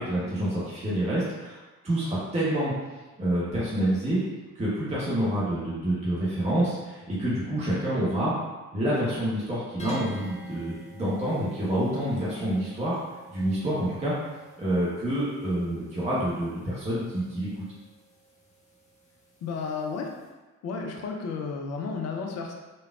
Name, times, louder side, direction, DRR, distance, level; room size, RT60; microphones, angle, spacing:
voice 1, 0.0-1.6 1.8-2.7 3.2-4.2 4.5-8.3 8.7-13.0 13.3-14.1 14.6-17.6, right 1 dB, 15° right, -8 dB, 0.8 m, -27 dB
sound 1, 9.8-20.3, right 1 dB, 15° left, 0.8 m, -46 dB
voice 2, 19.4-20.1 20.6-22.5, left 4 dB, 35° left, 2 dB, 0.5 m, -32 dB
3.3 x 2.4 x 2.3 m, 1.2 s
figure-of-eight pair, 45°, 44 cm